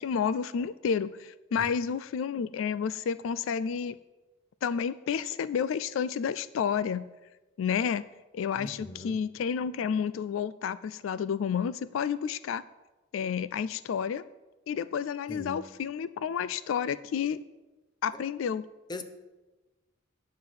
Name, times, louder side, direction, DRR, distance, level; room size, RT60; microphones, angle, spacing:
voice 1, 0.0-4.0 4.6-7.0 7.6-8.1 8.3-12.6 13.1-14.2 14.7-17.4 18.0-18.6, left 7 dB, 75° left, 0.3 m, -30 dB
voice 2, 8.6-9.2 15.3-15.6 18.1-18.2 18.9-19.0, left 2 dB, 20° left, 0.8 m, -40 dB
9.3 x 7.4 x 6.2 m
head